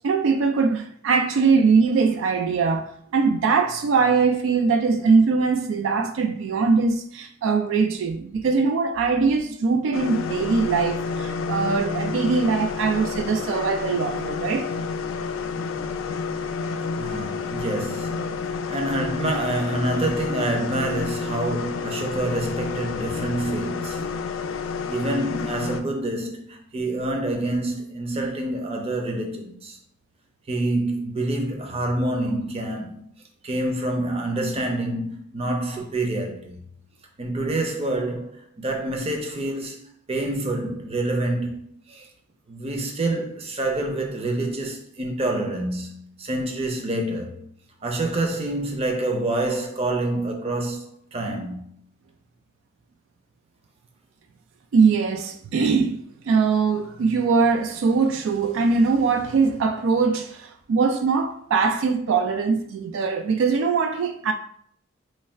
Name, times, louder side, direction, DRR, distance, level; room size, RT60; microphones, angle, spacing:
voice 1, 0.0-14.7 54.7-64.3, right 4 dB, 75° right, 0.3 m, -21 dB
sound 1, 9.9-25.8, left 5 dB, 80° left, 0.3 m, -30 dB
voice 2, 16.9-18.4 18.7-24.1 24.9-29.8 30.5-33.0 33.4-36.6 37.2-41.6 41.9-42.1 42.5-47.4 47.8-50.8 51.1-51.6, right 1 dB, 30° right, 0.6 m, -27 dB
3.2 x 2.3 x 4.3 m
head